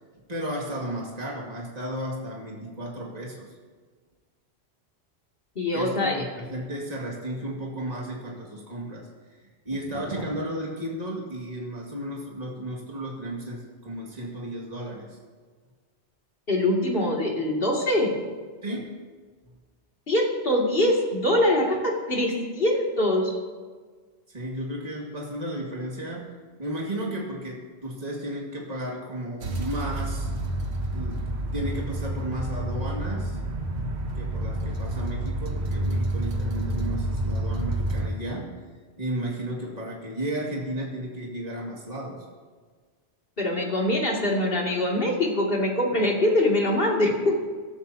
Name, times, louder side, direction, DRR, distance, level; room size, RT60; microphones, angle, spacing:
voice 1, 0.3-3.5 5.7-9.1 9.4-15.2 18.6-19.0 24.3-30.3 30.9-33.4 34.1-38.6 39.0-42.3, right 1 dB, 40° right, -2 dB, 2.3 m, -34 dB
voice 2, 5.6-6.2 16.5-18.2 20.1-23.3 43.4-47.4, left 1 dB, 55° left, -2 dB, 2.7 m, -23 dB
sound 1, 29.4-38.1, right 1 dB, 75° right, 1.5 m, -29 dB
26.0 x 13.0 x 2.8 m, 1.5 s
omnidirectional pair, 1.1 m